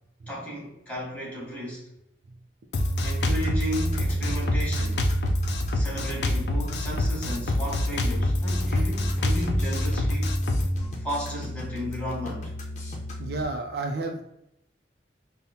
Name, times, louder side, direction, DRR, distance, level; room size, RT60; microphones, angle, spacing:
voice 1, 0.3-1.8 3.0-5.1 5.7-10.4 11.0-12.5, equal, 10° left, -5 dB, 1.3 m, -34 dB
Drum kit, 2.7-10.7, left 2 dB, 75° left, 0.4 m, -27 dB
sound 1, 2.8-13.4, right 1 dB, 40° left, 0.7 m, -30 dB
voice 2, 13.2-14.2, right 2 dB, 60° right, 3 dB, 0.4 m, -32 dB
5.4 x 2.0 x 2.8 m, 0.82 s
head